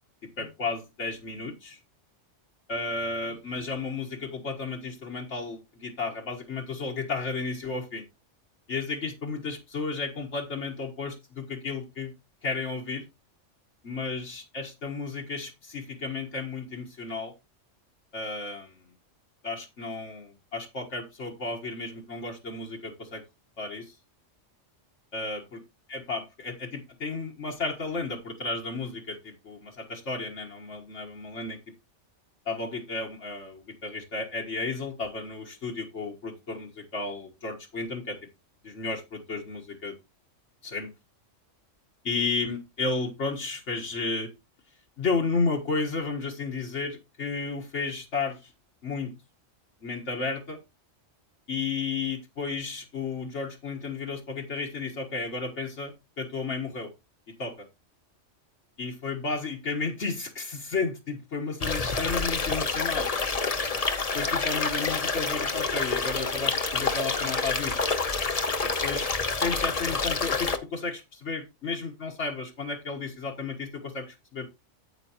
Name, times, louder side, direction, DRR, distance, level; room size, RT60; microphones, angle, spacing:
voice 1, 0.2-1.8 2.7-8.0 8.7-12.1 12.4-13.0 13.8-17.3 18.1-18.8 19.4-23.2 23.6-23.9 25.1-25.6 25.9-31.6 32.5-38.2 38.6-40.0 40.6-40.9 42.0-44.3 45.0-48.5 48.8-49.1 49.8-50.6 51.5-56.9 57.4-57.5 58.8-63.1 64.1-67.9 68.8-74.5, left 4 dB, 75° left, 1.9 m, -33 dB
sound 1, 61.6-70.6, left 4 dB, 35° left, 1.0 m, -28 dB
9.1 x 8.5 x 3.0 m
omnidirectional pair, 1.2 m